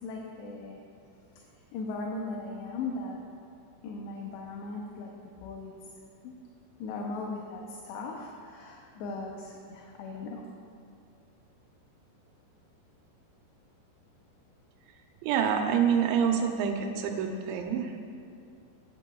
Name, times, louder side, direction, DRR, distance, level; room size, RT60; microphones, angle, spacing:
voice 1, 0.0-0.8 1.7-3.2 3.8-5.1 5.4-5.7 6.2-6.3 6.8-10.4, left 3 dB, 80° left, 0 dB, 2.8 m, -38 dB
voice 2, 15.2-18.1, right 7 dB, 90° right, 4 dB, 3.1 m, -27 dB
15.5 x 11.0 x 2.3 m, 2.5 s
omnidirectional pair, 5.1 m